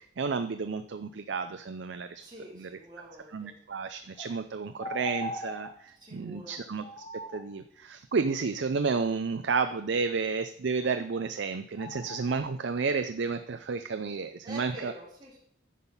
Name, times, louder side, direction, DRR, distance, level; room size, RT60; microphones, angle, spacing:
voice 1, 0.0-2.3 2.6-2.8 3.3-6.8 7.1-14.9, right 4 dB, 70° right, 9 dB, 0.5 m, -31 dB
voice 2, 2.2-3.5 5.9-6.6 14.4-15.4, right 1 dB, 20° right, -5 dB, 2.6 m, -46 dB
sound 1, 4.2-4.3 4.8-5.7 6.8-7.4 11.1-11.2 11.8-12.4, left 1 dB, 25° left, 0.9 m, -39 dB
10.0 x 5.7 x 5.4 m, 0.67 s
head